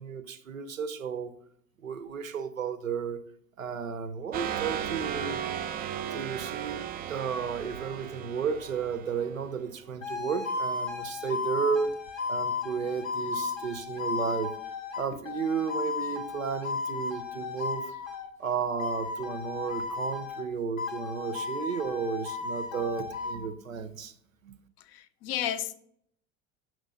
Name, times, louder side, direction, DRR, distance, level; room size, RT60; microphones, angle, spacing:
voice 1, 0.0-1.3 1.8-3.2 3.6-5.4 6.1-6.8 7.1-11.9 12.3-14.5 15.0-18.0 18.4-24.1 24.4-24.5, right 6 dB, 85° right, 10 dB, 0.5 m, -33 dB
sound 1, 4.3-9.7, right 9 dB, 25° right, 0.3 m, -35 dB
sound 2, 10.0-18.3 18.8-20.5 20.8-23.4, left 4 dB, 85° left, 0.9 m, -34 dB
voice 2, 24.9-25.7, left 11 dB, 40° left, 13 dB, 0.5 m, -32 dB
6.2 x 3.1 x 5.2 m, 0.67 s
figure-of-eight pair, 60°, 39 cm